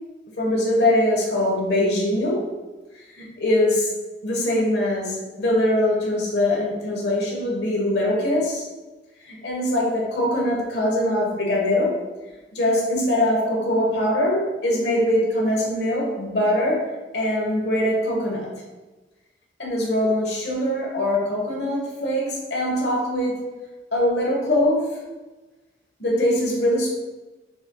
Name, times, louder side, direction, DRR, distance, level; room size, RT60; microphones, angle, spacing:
voice 1, 0.4-2.5 3.1-3.9 4.2-8.7 9.2-12.0 12.5-18.5 19.6-23.4 23.9-25.0 26.0-26.9, left 1 dB, 70° left, -3 dB, 1.2 m, -22 dB
4.4 x 4.2 x 2.3 m, 1.2 s
head